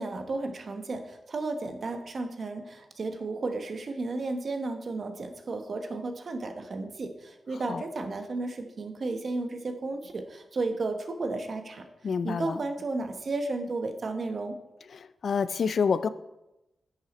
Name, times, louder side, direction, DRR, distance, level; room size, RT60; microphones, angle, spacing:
voice 1, 0.0-11.8 12.2-14.6, right 3 dB, 60° right, 6 dB, 1.1 m, -33 dB
voice 2, 12.0-12.6 14.9-16.1, left 6 dB, 70° left, 15 dB, 0.4 m, -28 dB
10.0 x 6.6 x 4.2 m, 0.94 s
cardioid pair, 70°, 0 cm